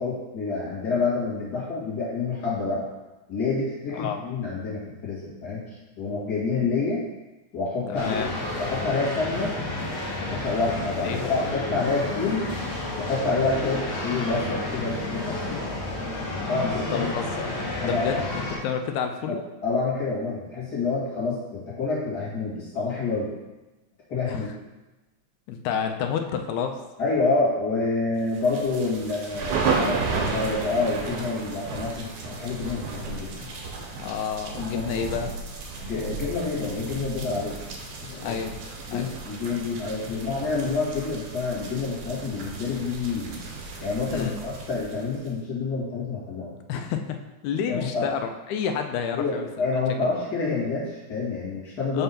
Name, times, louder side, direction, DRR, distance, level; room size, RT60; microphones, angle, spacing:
voice 1, 0.0-2.9 3.3-5.6 6.0-7.0 7.5-8.2 8.5-9.5 10.3-12.5 13.0-15.6 16.5-17.1 17.8-18.2 19.3-23.3 24.1-24.5 27.0-33.5 34.0-34.1 34.6-34.8 35.8-37.6 38.0-38.4 38.9-43.4 43.8-46.5 47.7-48.1 49.2-52.0, left 3 dB, 35° left, -8 dB, 2.2 m, -28 dB
voice 2, 7.9-8.3 11.0-11.2 16.9-17.3 17.8-19.4 24.3-24.5 25.5-26.8 34.0-35.3 38.2-38.6 38.9-39.1 44.1-44.4 46.7-47.2 47.4-50.1 51.9-52.0, left 7 dB, 80° left, 6 dB, 2.0 m, -30 dB
sound 1, 8.0-18.6, left 2 dB, 55° left, 1.7 m, -31 dB
sound 2, 28.3-45.3, right 4 dB, 75° right, 2.1 m, -33 dB
5.4 x 3.4 x 5.6 m, 1.1 s
omnidirectional pair, 3.5 m